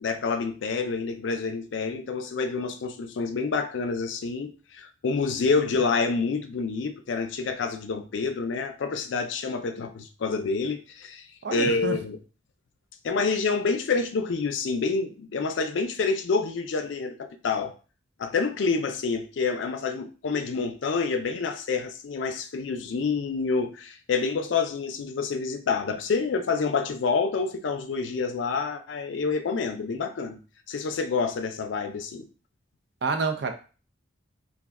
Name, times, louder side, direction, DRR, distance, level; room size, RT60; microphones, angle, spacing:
voice 1, 0.0-11.2 11.5-12.2 13.0-17.7 18.2-30.4 30.7-32.3, left 4 dB, 80° left, 0.4 m, -28 dB
voice 2, 11.4-11.9 33.0-33.5, right 4 dB, 65° right, 0.4 m, -27 dB
2.3 x 2.2 x 3.5 m
head